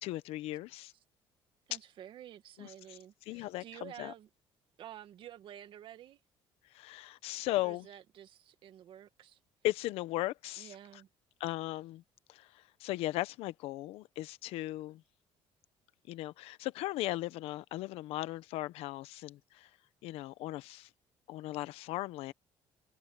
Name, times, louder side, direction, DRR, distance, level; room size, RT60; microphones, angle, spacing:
voice 1, 0.0-0.9 2.6-3.0 3.3-4.1 6.7-7.9 9.6-10.7 11.4-12.0 12.3-15.0 16.1-19.7 20.0-20.9 21.3-22.3, left 17 dB, 80° left, 1.0 m, -37 dB
voice 2, 1.7-4.3 4.8-6.2 7.6-9.4 10.6-11.1, right 11 dB, 55° right, 2.0 m, -51 dB
cardioid pair, 110°, 10 cm